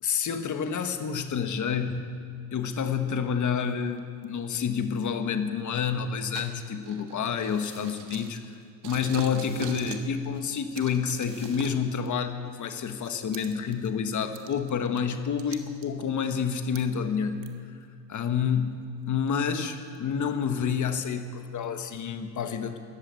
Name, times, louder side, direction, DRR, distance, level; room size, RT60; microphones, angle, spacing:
voice 1, 0.0-2.0 2.5-17.4 18.1-22.8, left 7 dB, 45° left, 8 dB, 1.3 m, -29 dB
sound 1, 2.6-2.8 3.7-4.2 5.0-5.1 6.3-8.5 8.8-10.1 10.3-12.1 12.8-13.9 14.3-16.8 17.4-17.5 18.1-18.2 19.3-19.4 19.9-20.0 20.4-20.5 21.1-21.2 21.6-22.0, right 8 dB, 70° right, 1.4 m, -43 dB
sound 2, 7.3-8.0 9.1-9.9 11.0-11.7, left 1 dB, 15° left, 3.4 m, -53 dB
14.0 x 11.5 x 8.2 m, 2.2 s
cardioid pair, 110°, 43 cm